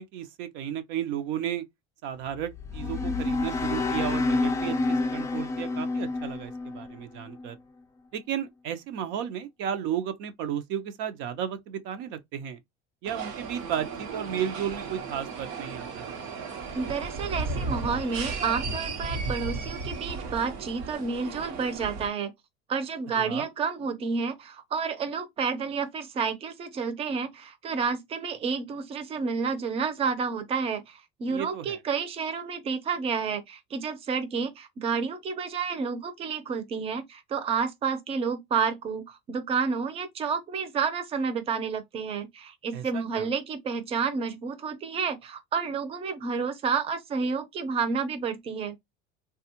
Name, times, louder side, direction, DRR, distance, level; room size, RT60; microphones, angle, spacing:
voice 1, 0.0-1.7 2.0-7.6 8.1-12.6 13.0-16.2 23.1-23.5 31.3-31.8 42.7-43.3, right 9 dB, 65° right, 0.6 m, -34 dB
sound 1, 2.3-7.5, left 3 dB, 15° left, 0.4 m, -29 dB
sound 2, 13.0-22.1, right 4 dB, 85° right, 1.0 m, -35 dB
voice 2, 16.7-22.3 22.7-48.7, right 5 dB, 30° right, 0.6 m, -30 dB
3.3 x 2.3 x 2.8 m
cardioid pair, 145°, 20 cm